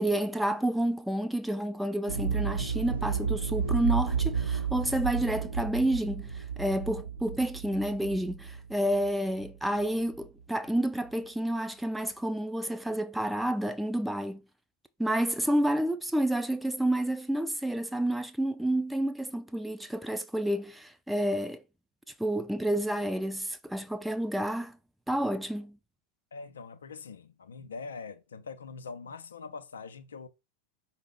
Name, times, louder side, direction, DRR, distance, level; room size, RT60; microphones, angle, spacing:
voice 1, 0.0-14.4 15.0-21.6 22.2-24.8 25.1-25.8, right 1 dB, 5° right, 0.4 m, -29 dB
sound 1, 2.1-9.8 10.1-10.2, right 6 dB, 70° right, 0.6 m, -32 dB
voice 2, 26.3-30.3, left 4 dB, 70° left, 0.4 m, -43 dB
5.0 x 2.0 x 3.6 m
figure-of-eight pair, 90°, 0 cm